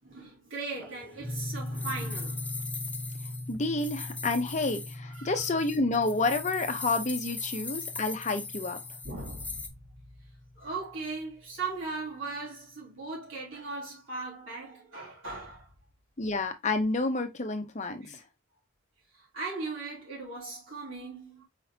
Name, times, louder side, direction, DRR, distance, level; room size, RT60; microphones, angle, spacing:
voice 1, 0.0-2.6 5.1-5.4 9.0-9.7 10.6-15.7 18.0-18.2 19.1-21.4, right 3 dB, 65° right, 3.2 m, -38 dB
sound 1, 0.8-9.7, left 4 dB, 5° left, 0.4 m, -40 dB
sound 2, 1.2-11.4, left 1 dB, 10° right, 1.1 m, -41 dB
voice 2, 3.5-8.8 16.2-18.2, left 3 dB, 35° left, 0.8 m, -29 dB
4.8 x 3.9 x 2.8 m
head